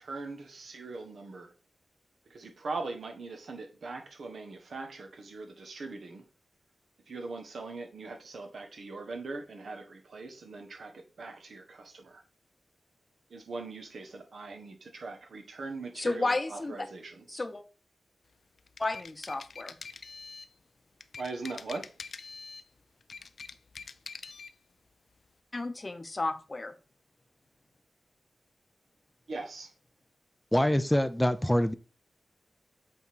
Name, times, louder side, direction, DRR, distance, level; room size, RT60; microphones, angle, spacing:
voice 1, 0.0-1.5 2.3-6.2 7.1-12.2 13.3-17.4 21.2-21.9 29.3-29.7, right 3 dB, 75° right, 1.3 m, -41 dB
voice 2, 15.9-16.9 17.3-17.6 18.8-19.8 25.5-26.7, left 2 dB, 35° left, 0.8 m, -32 dB
sound 1, 18.6-20.5 21.0-22.7 23.0-24.5, left 5 dB, 70° left, 0.5 m, -45 dB
voice 3, 30.5-31.7, equal, 10° left, 0.5 m, -25 dB
8.2 x 3.7 x 4.6 m
cardioid pair, 70°, 0 cm